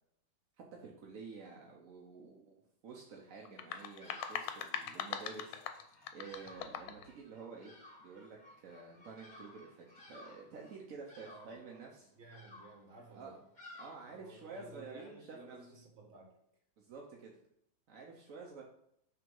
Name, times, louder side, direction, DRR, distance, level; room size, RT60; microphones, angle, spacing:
voice 1, 0.7-5.6 6.1-12.1 13.1-13.4 13.8-15.7 16.8-17.3 17.9-18.6, right 4 dB, 60° right, -1 dB, 0.9 m, -50 dB
sound 1, 3.4-7.1, left 9 dB, 80° left, 1.4 m, -41 dB
Bird vocalization bird call bird song, 3.7-14.6, left 2 dB, 25° left, 1.6 m, -57 dB
voice 2, 11.2-11.6 12.1-13.4 14.1-16.3, right 2 dB, 40° right, 1 dB, 1.6 m, -55 dB
6.1 x 3.6 x 5.3 m, 0.74 s
omnidirectional pair, 2.2 m